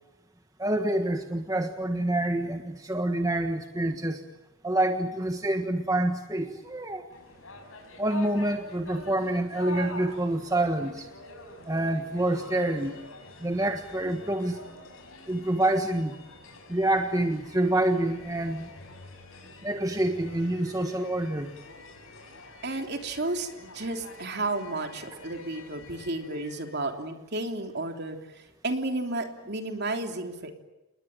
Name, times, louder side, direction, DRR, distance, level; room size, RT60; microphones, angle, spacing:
voice 1, 0.6-4.2 4.6-7.1 8.0-11.1 11.6-13.0 13.4-14.6 15.3-16.2 16.7-18.7 19.6-21.5, right 1 dB, 15° right, 5 dB, 1.4 m, -27 dB
sound 1, 7.1-26.9, left 2 dB, 70° left, 6.6 m, -46 dB
voice 2, 22.6-28.2 28.6-30.5, right 2 dB, 50° right, 5 dB, 3.3 m, -32 dB
29.0 x 21.0 x 9.0 m, 0.99 s
head